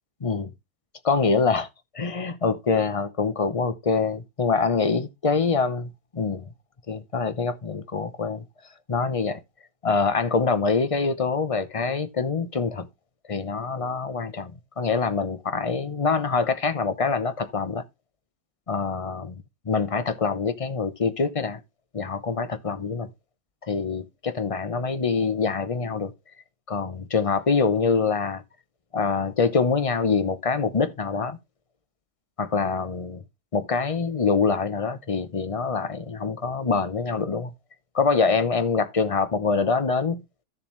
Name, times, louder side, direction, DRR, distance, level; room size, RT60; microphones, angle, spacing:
voice 1, 1.0-1.7 1.9-6.5 6.9-8.4 8.9-9.4 9.8-12.9 13.3-17.8 18.7-21.6 21.9-23.1 23.6-26.1 26.7-28.4 28.9-31.4 32.4-33.2 33.5-37.5 37.9-40.2, left 4 dB, 55° left, 0.3 m, -25 dB
13.5 x 7.1 x 3.2 m
omnidirectional pair, 1.9 m